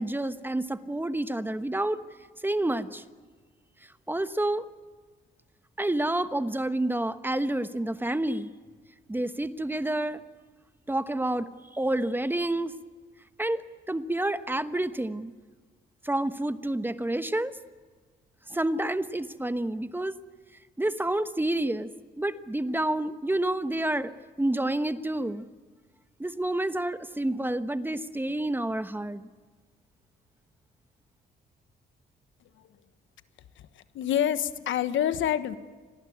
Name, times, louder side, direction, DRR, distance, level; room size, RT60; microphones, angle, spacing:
voice 1, 0.0-2.0 2.4-3.0 4.1-4.7 5.8-8.5 9.1-10.2 10.9-11.5 11.7-12.7 13.4-15.3 16.0-17.6 18.5-20.2 20.8-21.9 22.2-25.5 26.2-29.3, right 1 dB, 10° right, 11 dB, 1.1 m, -29 dB
voice 2, 33.6-35.6, left 10 dB, 75° left, 12 dB, 1.4 m, -27 dB
27.0 x 19.5 x 9.5 m, 1.5 s
cardioid pair, 90°, 20 cm